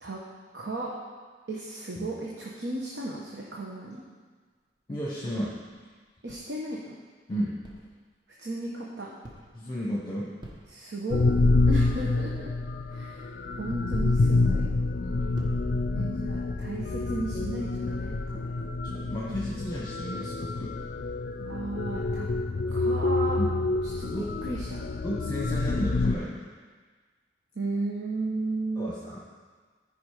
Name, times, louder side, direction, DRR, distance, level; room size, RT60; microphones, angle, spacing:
voice 1, 0.5-0.9 1.5-4.0 6.2-7.0 8.4-9.1 10.7-11.2 11.7-12.5 12.9-13.3 13.6-14.6 15.9-18.5 21.4-22.3 22.7-23.4 24.0-24.1 24.4-24.8 27.5-28.9, right 2 dB, 80° right, -3 dB, 1.1 m, -34 dB
sound 1, 4.5-7.2 7.6-8.2 8.9-9.9 10.2-11.3 11.8-12.0 12.3-18.8, equal, 25° right, 1.2 m, -50 dB
voice 2, 4.9-5.5 7.3-7.6 9.5-10.3 15.0-15.3 18.8-20.7 23.4-23.5 24.1-24.4 25.0-26.3 28.8-29.2, equal, 25° left, -5 dB, 1.1 m, -33 dB
sound 2, 11.1-26.1, left 3 dB, 55° left, 0.4 m, -27 dB
13.5 x 5.1 x 5.0 m, 1.5 s
head